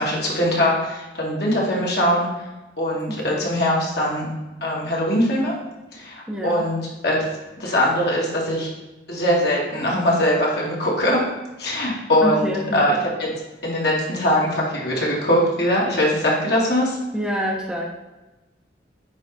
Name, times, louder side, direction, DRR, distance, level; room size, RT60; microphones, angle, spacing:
voice 1, 0.0-2.3 2.8-4.3 4.6-5.5 5.9-7.3 7.6-8.7 9.1-11.2 11.6-13.3 13.6-17.0, left 1 dB, 60° left, -3 dB, 2.1 m, -21 dB
voice 2, 3.1-3.5 6.3-6.7 12.2-13.0 17.1-17.9, equal, 5° right, -1 dB, 0.7 m, -27 dB
9.6 x 3.7 x 4.0 m, 1.1 s
head